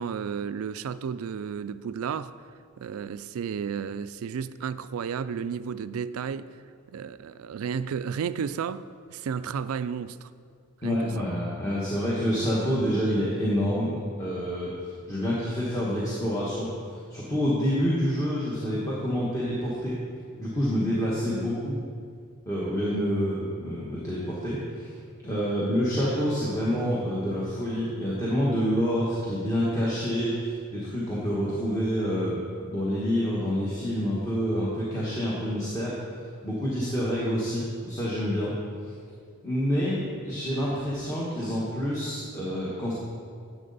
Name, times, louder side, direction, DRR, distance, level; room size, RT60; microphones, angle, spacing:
voice 1, 0.0-2.3 2.8-6.5 6.9-10.3 10.8-11.3, right 7 dB, 80° right, 0.3 m, -32 dB
voice 2, 10.8-20.0 20.4-21.7 22.5-24.9 25.2-32.4 32.7-36.0 36.4-38.5 39.4-42.9, equal, 15° left, 1.3 m, -27 dB
11.0 x 7.5 x 4.0 m
head